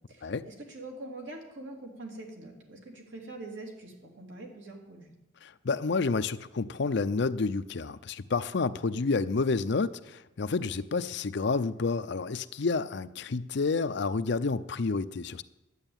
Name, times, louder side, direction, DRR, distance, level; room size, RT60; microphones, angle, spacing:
voice 1, 0.1-5.1, right 2 dB, 80° right, 3.0 m, -44 dB
voice 2, 5.4-15.4, left 4 dB, 65° left, 0.6 m, -29 dB
11.0 x 9.0 x 8.8 m
head